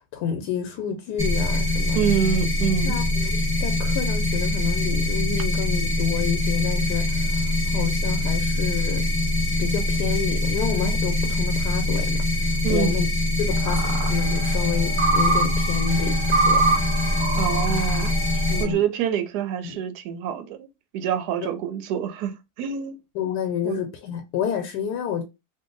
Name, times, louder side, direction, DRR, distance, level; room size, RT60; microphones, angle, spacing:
voice 1, 0.1-2.0 2.8-9.0 9.6-13.1 13.4-17.0 18.5-18.8 19.6-19.8 23.1-25.2, left 7 dB, 85° left, 1.2 m, -29 dB
sound 1, 1.2-18.6, left 1 dB, 10° right, 1.1 m, -23 dB
voice 2, 1.9-3.0 12.6-12.9 17.3-20.7 20.9-23.0 23.6-23.8, right 9 dB, 80° right, 1.1 m, -26 dB
sound 2, 13.5-18.8, right 3 dB, 60° right, 0.7 m, -26 dB
2.7 x 2.5 x 3.7 m
omnidirectional pair, 1.7 m